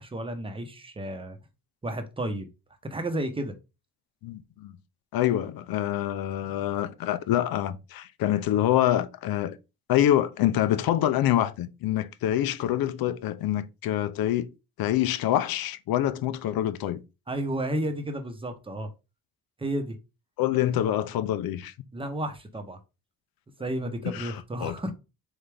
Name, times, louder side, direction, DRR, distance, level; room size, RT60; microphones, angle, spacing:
voice 1, 0.0-1.4 1.8-2.5 2.8-3.5 17.3-18.9 19.6-20.0 21.9-22.8 23.6-24.9, right 1 dB, 15° right, 0.9 m, -32 dB
voice 2, 4.2-4.7 5.1-9.6 9.9-14.5 14.8-17.0 20.4-21.7 24.0-24.9, left 12 dB, 70° left, 0.6 m, -26 dB
4.0 x 3.5 x 3.3 m
cardioid pair, 90°, 37 cm